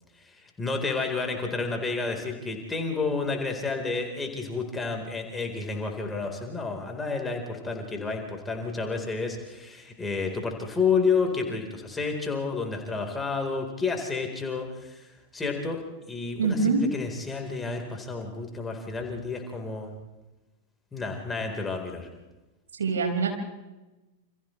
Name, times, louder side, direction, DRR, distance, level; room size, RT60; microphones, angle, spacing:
voice 1, 0.2-15.8 16.1-19.9 20.9-22.1, left 4 dB, 15° left, 2 dB, 4.3 m, -30 dB
voice 2, 16.4-16.8 22.8-23.3, right 5 dB, 70° right, 2 dB, 5.4 m, -24 dB
29.5 x 28.0 x 3.3 m, 1.1 s
figure-of-eight pair, 90°, 0 cm